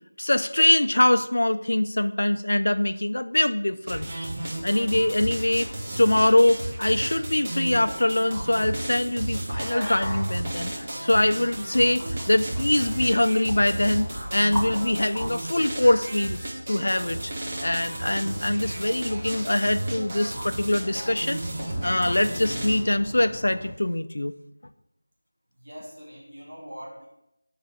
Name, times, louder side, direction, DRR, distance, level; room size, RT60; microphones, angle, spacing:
voice 1, 0.2-4.1 4.6-5.7 6.0-10.7 11.0-16.4 16.7-17.3 17.6-21.4 21.8-24.3, left 1 dB, 75° left, 11 dB, 0.4 m, -23 dB
sound 1, 3.9-22.8, right 1 dB, 30° right, 0.9 m, -33 dB
sound 2, 9.5-15.3, equal, ahead, 1.0 m, -37 dB
sound 3, 16.8-23.7, left 1 dB, 25° left, 0.5 m, -41 dB
voice 2, 25.5-27.1, equal, 65° right, -5 dB, 3.2 m, -42 dB
5.7 x 4.7 x 6.3 m, 0.86 s
figure-of-eight pair, 175°, 0 cm